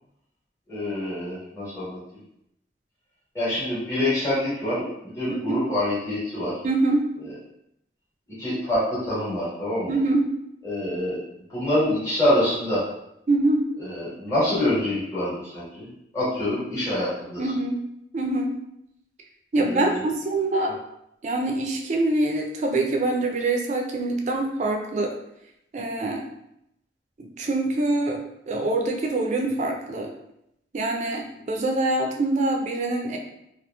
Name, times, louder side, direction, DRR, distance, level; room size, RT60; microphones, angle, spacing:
voice 1, 0.7-2.0 3.3-6.6 8.4-10.0 10.6-11.2 11.5-12.8 13.8-15.9 16.1-17.5 19.6-20.0, left 1 dB, 15° left, -10 dB, 1.1 m, -26 dB
voice 2, 5.3-5.6 6.6-7.1 9.9-10.3 13.3-13.7 17.4-17.8 18.1-18.5 19.5-20.7 21.2-25.2 25.7-26.2 27.2-30.1 30.7-33.2, right 2 dB, 40° right, 2 dB, 0.3 m, -24 dB
2.8 x 2.4 x 2.2 m, 0.79 s
head